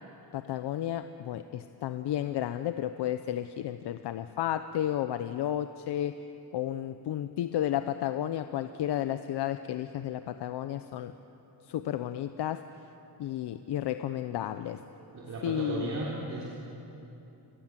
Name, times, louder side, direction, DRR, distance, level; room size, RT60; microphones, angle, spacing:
voice 1, 0.3-6.1 6.5-11.1 11.7-12.6 13.2-14.8 15.4-15.9, left 11 dB, 75° left, 10 dB, 0.9 m, -32 dB
voice 2, 15.0-16.4, right 2 dB, 40° right, -5 dB, 3.6 m, -36 dB
28.0 x 22.5 x 7.6 m, 2.9 s
cardioid pair, 170°, 41 cm